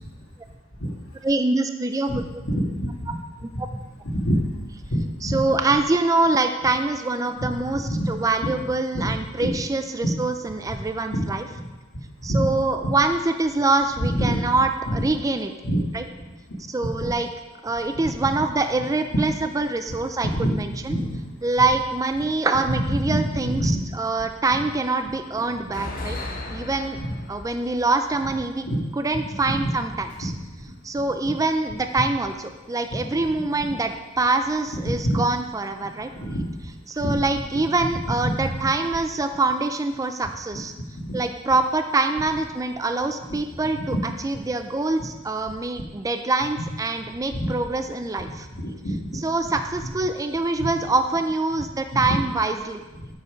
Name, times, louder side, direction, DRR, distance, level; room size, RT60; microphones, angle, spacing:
voice 1, 1.2-2.2 5.2-7.8 8.1-11.4 12.2-15.5 15.9-16.0 16.7-17.3 17.6-20.9 21.4-26.2 26.5-27.0 27.3-28.6 29.0-30.3 30.8-33.9 34.2-36.1 36.9-40.7 41.1-43.9 44.2-48.5 49.2-52.8, right 3 dB, 15° right, 7 dB, 0.4 m, -24 dB
voice 2, 2.1-3.2 3.5-3.6 4.0-4.5 4.9-5.4 7.4-8.1 8.4-8.5 8.9-9.1 9.4-9.6 10.0-10.2 11.1-11.2 11.6-11.7 12.3-12.5 12.8-12.9 14.0-14.4 14.9-15.0 15.6-15.8 16.8-17.1 19.1-19.2 20.2-20.5 20.8-21.2 22.9-23.8 26.9-27.2 28.6-28.8 29.5-29.7 30.2-30.4 33.0-33.1 34.7-35.2 36.2-36.5 37.0-37.2 37.9-38.7 41.0-41.1 43.3-43.4 43.7-44.0 45.0-45.1 46.6-46.7 47.3-47.5 48.3-49.0 49.4-49.5 49.8-49.9 50.6-50.7 52.0-52.2 53.0-53.1, equal, 90° left, -7 dB, 1.8 m, -26 dB
sound 1, 25.5-30.2 30.5-30.6 31.7-31.9 34.1-35.4 36.4-36.6 37.0-37.1 37.6-37.7 39.5-39.6 40.3-40.4 42.8-43.0 43.6-43.9 44.4-45.0, left 1 dB, 45° left, 1.3 m, -38 dB
8.2 x 5.4 x 5.0 m, 1.2 s
head